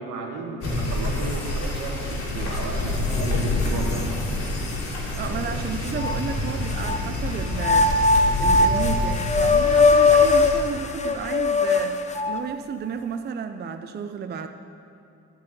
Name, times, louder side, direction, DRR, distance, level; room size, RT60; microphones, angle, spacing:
voice 1, 0.0-4.2 5.3-5.5, right 3 dB, 80° right, 1 dB, 1.5 m, -33 dB
sound 1, 0.6-10.6, left 2 dB, 55° left, 2.7 m, -27 dB
sound 2, 2.5-2.6 3.1-4.0 4.7-4.8 5.9-7.0 7.6-12.5, left 3 dB, 25° left, 0.6 m, -20 dB
voice 2, 5.2-14.5, right 6 dB, 35° right, 8 dB, 0.5 m, -32 dB
11.5 x 4.7 x 8.2 m, 2.8 s
cardioid pair, 90°, 30 cm